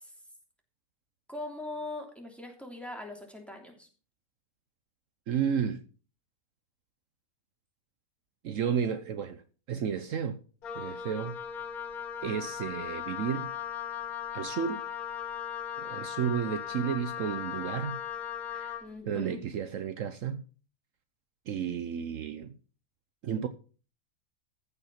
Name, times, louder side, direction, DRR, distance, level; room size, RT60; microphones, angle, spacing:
voice 1, 1.3-3.9 18.8-19.4, left 2 dB, ahead, 3.0 m, -41 dB
voice 2, 5.3-5.8 8.4-9.4 9.7-10.4 10.7-11.4 12.2-13.5 14.3-14.8 15.8-18.0 18.5-18.8 19.1-20.4 21.5-22.5 23.2-23.5, right 7 dB, 65° right, 1.1 m, -32 dB
Wind instrument woodwind instrument, 10.6-18.9, left 9 dB, 85° left, 1.8 m, -38 dB
14.5 x 5.9 x 5.8 m
omnidirectional pair, 1.5 m